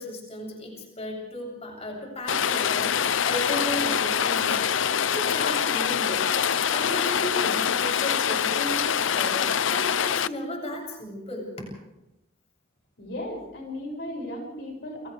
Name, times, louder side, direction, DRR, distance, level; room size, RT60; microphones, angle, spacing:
voice 1, 0.0-2.9 3.2-6.3 6.7-11.5, left 1 dB, 35° left, 0 dB, 7.8 m, -35 dB
Rain, 2.3-10.3, left 8 dB, 80° left, 0.7 m, -24 dB
voice 2, 13.0-15.1, left 1 dB, 65° left, 0 dB, 6.9 m, -35 dB
30.0 x 25.5 x 3.5 m, 0.91 s
head